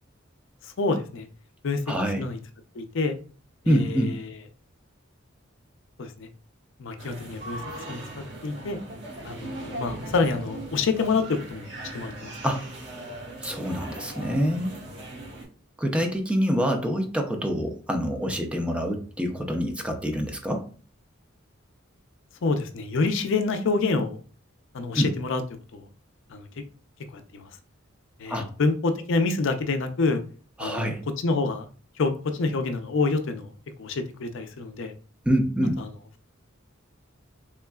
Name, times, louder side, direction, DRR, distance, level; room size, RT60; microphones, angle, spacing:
voice 1, 0.6-1.3 1.6-1.8 2.2-2.4 2.7-3.1 3.6-4.3 6.0-6.3 6.8-7.6 7.9-8.8 9.2-11.7 11.9-12.3 22.4-24.2 24.7-25.4 25.7-25.9 26.3-26.5 27.1-27.5 28.2-30.2 30.6-31.7 32.0-33.5 33.8-34.9 35.8-35.9, left 3 dB, 65° left, 8 dB, 0.5 m, -27 dB
voice 2, 1.9-2.2 3.7-4.2 12.4-12.6 13.4-14.8 15.8-20.6 24.9-25.1 28.3-28.5 30.6-31.0 35.3-35.8, equal, 5° right, 3 dB, 0.5 m, -26 dB
sound 1, 7.0-15.4, right 1 dB, 60° right, 1.5 m, -39 dB
3.6 x 3.1 x 2.3 m, 0.40 s
head